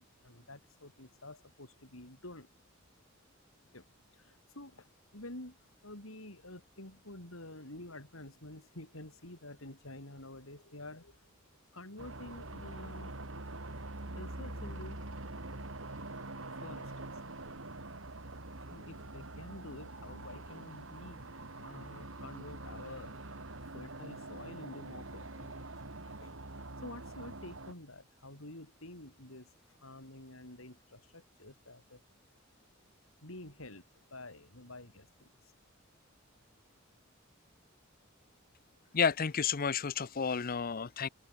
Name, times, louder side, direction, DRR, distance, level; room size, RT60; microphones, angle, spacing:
voice 1, 0.0-2.5 3.7-3.9 4.1-11.2 11.7-13.2 14.1-15.0 16.6-17.1 18.7-23.3 23.7-25.7 26.0-32.0 33.2-33.8 34.1-35.3, left 1 dB, 90° left, 6.9 m, -49 dB
sound 1, 12.0-27.7, right 2 dB, 70° right, 3.2 m, -45 dB
voice 2, 38.9-41.1, left 6 dB, 45° left, 0.7 m, -31 dB
open air
head